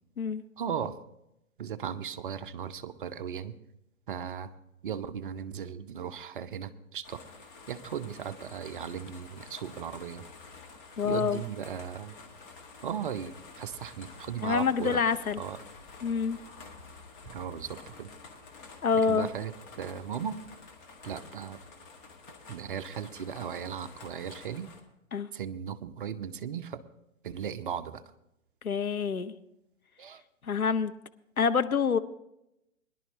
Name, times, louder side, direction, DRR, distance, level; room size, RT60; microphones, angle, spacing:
voice 1, 0.6-1.0 1.6-3.6 4.1-4.5 4.8-7.2 7.7-10.2 11.0-12.2 12.8-15.0 15.4-15.6 17.3-18.1 19.1-20.4 21.0-21.6 22.5-24.7 25.3-26.8 27.2-28.0 30.0-30.2, right 8 dB, 40° right, 0.6 m, -37 dB
sound 1, 7.0-24.8, left 4 dB, 35° left, 1.8 m, -50 dB
voice 2, 11.0-11.4 14.4-15.4 16.0-16.4 18.8-19.3 25.1-25.3 28.6-29.3 30.4-30.9 31.4-32.0, left 6 dB, 85° left, 0.8 m, -26 dB
Explosion, 17.2-18.8, right 2 dB, 5° right, 1.9 m, -56 dB
21.0 x 11.0 x 2.8 m
figure-of-eight pair, 125°, 42 cm